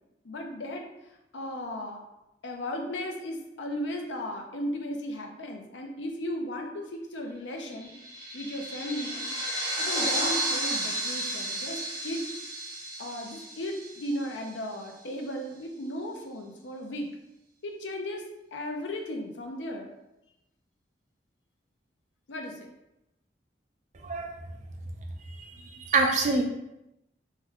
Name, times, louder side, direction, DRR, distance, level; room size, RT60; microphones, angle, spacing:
voice 1, 0.2-0.9 1.3-2.0 2.4-7.9 8.3-9.2 9.8-12.2 13.0-17.1 17.6-18.2 18.5-19.9 22.3-22.7, equal, 90° left, 2 dB, 0.6 m, -35 dB
sound 1, 7.7-14.6, right 1 dB, 20° right, 0.9 m, -32 dB
voice 2, 25.4-26.4, right 3 dB, 40° right, 2 dB, 0.4 m, -26 dB
3.1 x 2.2 x 3.6 m, 0.89 s
head